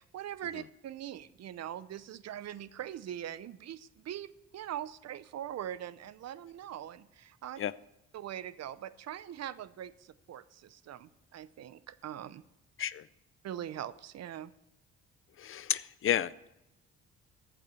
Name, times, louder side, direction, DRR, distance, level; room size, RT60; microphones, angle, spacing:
voice 1, 0.0-7.6 8.1-12.4 13.4-14.5, right 11 dB, 60° right, 16 dB, 0.6 m, -42 dB
voice 2, 15.4-16.5, left 10 dB, 45° left, 18 dB, 0.5 m, -31 dB
14.0 x 6.1 x 6.8 m, 0.88 s
cardioid pair, 90°, 30 cm